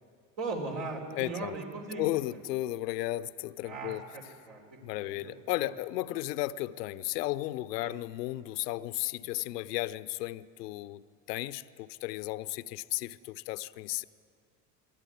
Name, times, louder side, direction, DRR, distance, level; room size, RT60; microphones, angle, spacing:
voice 1, 0.4-2.1 3.6-5.7 7.8-7.9 9.4-9.5, right 3 dB, 60° right, 4.1 m, -39 dB
voice 2, 1.2-1.6 2.0-4.0 4.8-14.0, left 16 dB, 75° left, 0.7 m, -34 dB
23.0 x 14.0 x 9.7 m
hypercardioid pair, 70°, 49 cm